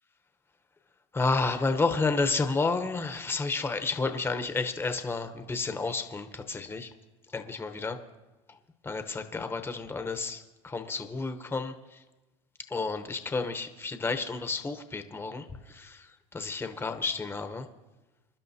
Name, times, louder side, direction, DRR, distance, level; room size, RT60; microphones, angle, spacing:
voice 1, 1.1-6.9 7.3-8.0 8.8-12.0 12.7-17.7, left 3 dB, 15° left, 7 dB, 0.9 m, -31 dB
26.5 x 11.5 x 2.8 m, 1.1 s
supercardioid pair, 105°, 17 cm